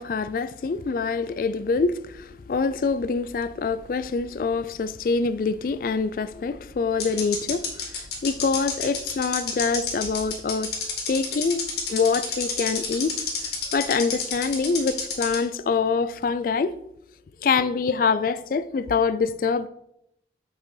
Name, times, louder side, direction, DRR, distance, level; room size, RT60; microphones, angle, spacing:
voice 1, 0.0-10.7 11.1-13.1 13.7-16.8 17.4-19.7, left 4 dB, 50° left, 0.3 m, -25 dB
sound 1, 2.5-4.1 4.3-4.4 6.2-6.3 7.0-15.4, left 6 dB, 65° left, 1.9 m, -29 dB
6.6 x 4.8 x 5.5 m
head